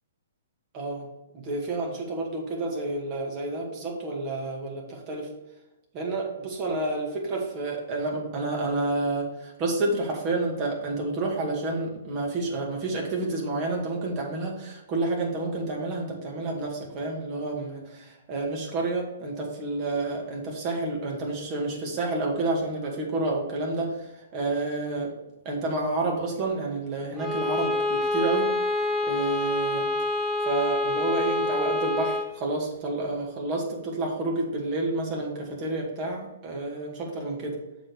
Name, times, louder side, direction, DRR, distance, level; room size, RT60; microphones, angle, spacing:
voice 1, 0.7-1.1 1.3-5.3 5.9-25.1 25.4-28.5 29.0-29.9 30.4-37.6, right 2 dB, 35° right, -1 dB, 2.1 m, -29 dB
Bowed string instrument, 27.2-32.4, left 2 dB, 5° right, 0.8 m, -27 dB
7.1 x 5.3 x 4.7 m, 0.96 s
figure-of-eight pair, 120°, 0 cm